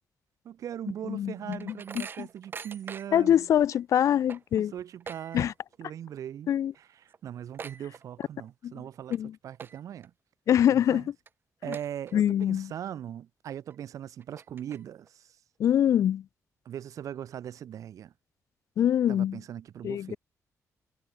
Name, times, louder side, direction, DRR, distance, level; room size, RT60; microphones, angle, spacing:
voice 1, 0.4-3.5 4.5-5.5 5.8-9.2 9.4-10.1 10.7-11.1 11.6-15.4 16.7-18.1 19.1-20.2, right 10 dB, 70° right, 1.9 m, -40 dB
sound 1, 0.9-3.3 3.7-3.8 4.1-5.8 6.1-6.5 6.7-6.8 7.1-8.5 8.9-9.2 9.5-10.1 10.6-10.7 11.3-11.4 11.7-12.5 12.9-13.0 13.7-13.8 14.2-15.1, right 6 dB, 40° right, 4.7 m, -44 dB
voice 2, 1.1-2.3 3.1-4.7 5.3-5.5 6.5-6.7 8.6-8.7 9.1-9.3 10.5-11.0 12.1-12.7 15.6-16.2 18.8-19.4 19.8-20.2, left 10 dB, 65° left, 0.6 m, -24 dB
wide cardioid pair, 180°, 6 cm